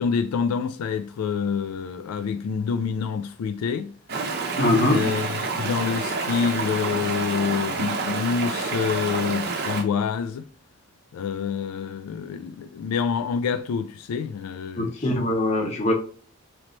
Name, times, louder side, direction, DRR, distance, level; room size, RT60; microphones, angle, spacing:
voice 1, 0.0-3.9 4.9-10.4 11.1-15.1, left 6 dB, 80° left, 0.3 m, -27 dB
Stream, 4.1-9.8, right 3 dB, 45° right, 0.6 m, -28 dB
voice 2, 4.6-5.0 14.8-15.9, left 1 dB, 30° left, 0.9 m, -22 dB
3.1 x 3.1 x 3.9 m
head